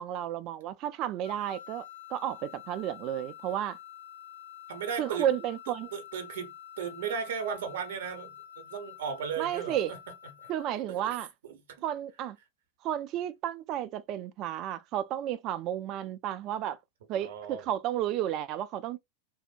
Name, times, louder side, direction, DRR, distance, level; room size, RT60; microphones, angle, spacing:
voice 1, 0.0-3.8 5.0-5.9 9.4-9.9 10.5-11.3 11.8-12.4 12.8-16.8 17.1-19.0, right 11 dB, 40° right, 0.3 m, -32 dB
sound 1, 1.2-10.8, left 11 dB, 75° left, 0.7 m, -48 dB
voice 2, 4.7-5.3 5.9-10.0 10.4-10.5 11.0-11.2 11.4-11.6 17.2-17.7, right 7 dB, 60° right, 0.7 m, -36 dB
2.6 x 2.0 x 2.4 m
figure-of-eight pair, 90°, 0 cm